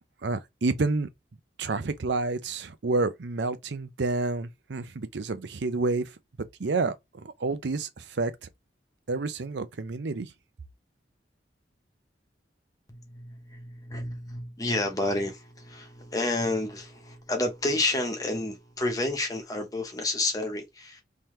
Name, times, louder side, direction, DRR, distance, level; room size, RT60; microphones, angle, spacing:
voice 1, 0.2-1.1 1.6-6.1 6.6-8.5 9.1-10.3, right 3 dB, 70° right, 0.6 m, -29 dB
voice 2, 12.9-21.0, left 2 dB, 20° left, 1.0 m, -30 dB
3.8 x 2.8 x 3.2 m
head